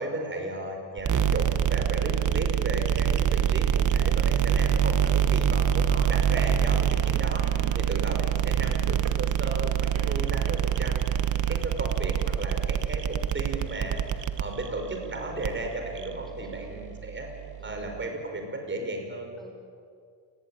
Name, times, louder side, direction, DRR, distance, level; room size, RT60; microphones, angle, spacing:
voice 1, 0.0-7.5 7.7-11.1 11.5-17.3 17.6-19.3, right 2 dB, 25° right, 3 dB, 5.7 m, -35 dB
sound 1, 1.0-18.0, right 9 dB, 45° right, 1.3 m, -26 dB
sound 2, 6.4-11.6, right 8 dB, 85° right, 2.1 m, -44 dB
voice 2, 16.3-16.8 17.6-18.0 19.4-19.5, equal, ahead, 0 dB, 5.6 m, -52 dB
28.5 x 20.5 x 9.3 m, 2.2 s
cardioid pair, 145°, 42 cm